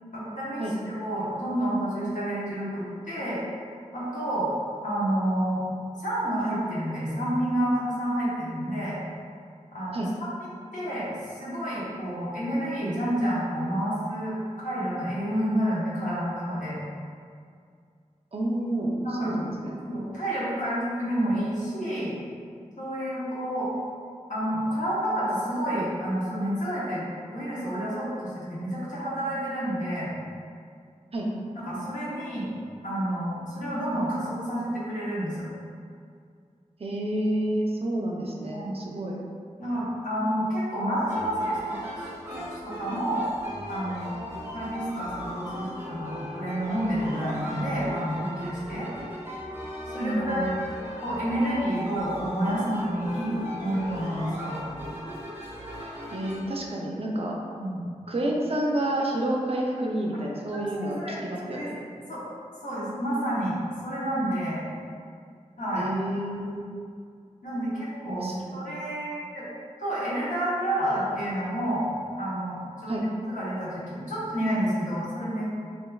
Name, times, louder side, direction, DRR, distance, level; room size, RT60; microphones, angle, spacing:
voice 1, 0.1-3.4 3.9-4.5 4.8-5.6 6.0-8.9 9.7-10.3 10.7-11.1 11.3-16.8 19.0-19.3 19.8-22.1 22.8-23.7 24.3-27.0 27.3-30.1 31.6-32.5 32.8-35.5 38.5-38.8 39.6-41.9 42.3-43.3 43.7-44.1 44.5-48.9 49.9-50.5 51.0-54.6 57.5-57.8 60.5-61.2 61.5-61.7 62.1-62.2 62.6-64.6 65.6-65.9 67.4-69.5 69.8-71.9 72.2-75.5, right 1 dB, 75° left, -9 dB, 0.9 m, -29 dB
voice 2, 18.3-19.0 19.2-19.8 31.1-31.3 36.8-39.2 50.0-50.5 56.1-57.3 58.1-61.8 65.7-66.7 68.1-68.6 72.9-73.1, right 1 dB, 50° right, -2 dB, 0.4 m, -29 dB
sound 1, 41.1-56.4, equal, 20° right, 0.9 m, -38 dB
3.3 x 2.8 x 2.3 m, 2.2 s
wide cardioid pair, 65°, 13 cm